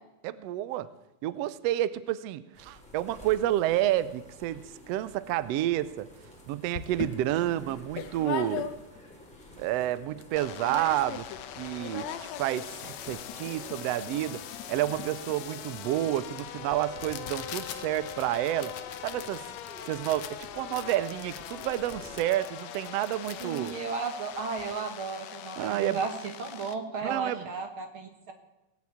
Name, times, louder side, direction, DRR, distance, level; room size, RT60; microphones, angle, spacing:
voice 1, 0.2-0.9 1.2-6.1 6.5-8.7 9.6-11.3 11.6-14.4 14.7-18.7 19.0-19.4 19.9-23.7 25.6-26.0 27.0-27.4, right 13 dB, 90° right, 16 dB, 1.4 m, -30 dB
sound 1, 2.5-22.3, equal, ahead, 2.5 m, -52 dB
sound 2, 6.3-6.4 6.7-9.1 9.5-9.6 9.8-10.3 10.6-11.4 11.7-24.7, left 9 dB, 70° left, 1.9 m, -41 dB
sound 3, 10.4-26.8, left 11 dB, 90° left, 2.5 m, -42 dB
voice 2, 23.4-26.1 26.4-28.3, right 5 dB, 55° right, 6 dB, 1.7 m, -34 dB
18.0 x 8.5 x 8.6 m, 0.95 s
omnidirectional pair, 3.6 m